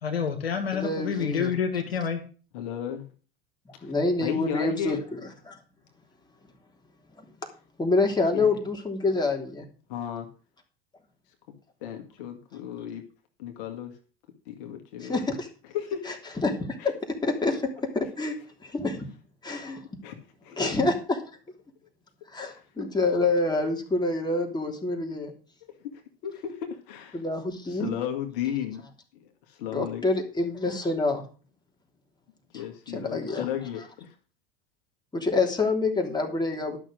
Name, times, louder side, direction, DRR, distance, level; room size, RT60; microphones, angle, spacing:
voice 1, 0.0-2.2, left 7 dB, 85° left, 5 dB, 2.0 m, -28 dB
voice 2, 0.7-1.5 3.8-5.2 5.5-5.6 7.8-9.6 15.0-15.5 16.4-16.9 17.2-17.6 17.9-18.3 18.6-19.1 19.4-19.8 20.6-21.2 22.3-25.3 27.1-27.9 29.7-31.2 32.9-33.5 35.1-36.8, left 3 dB, 15° left, 2 dB, 3.2 m, -27 dB
voice 3, 2.5-3.1 3.8-3.9 4.2-5.0 8.3-8.6 9.9-10.3 11.8-13.0 13.4-13.9 14.5-15.2 15.7-16.0 16.8-16.9 20.0-20.2 20.4-20.6 22.5-22.6 25.6-27.2 27.7-28.8 29.1-30.0 32.5-34.2, left 9 dB, 65° left, 5 dB, 2.1 m, -34 dB
12.0 x 6.5 x 6.4 m, 0.38 s
hypercardioid pair, 80°, 30 cm